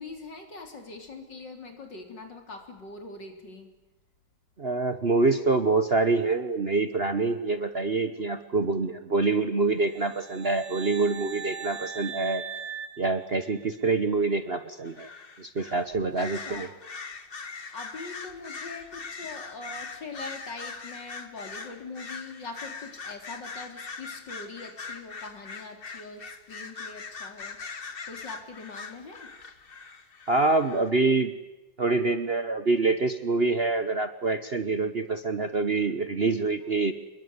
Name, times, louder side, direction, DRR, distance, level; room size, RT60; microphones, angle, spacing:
voice 1, 0.0-3.7 16.1-16.8 17.7-29.3, left 3 dB, 65° left, 5 dB, 4.3 m, -42 dB
voice 2, 4.6-12.4 13.0-15.1 15.4-16.7 30.3-31.3 31.8-36.9, right 3 dB, 40° right, 10 dB, 1.1 m, -26 dB
sound 1, 9.9-13.9, right 6 dB, 55° right, 2.1 m, -40 dB
sound 2, 14.8-15.9 16.2-30.9, left 4 dB, 35° left, 1.3 m, -41 dB
27.0 x 21.5 x 9.7 m, 1.0 s
omnidirectional pair, 2.1 m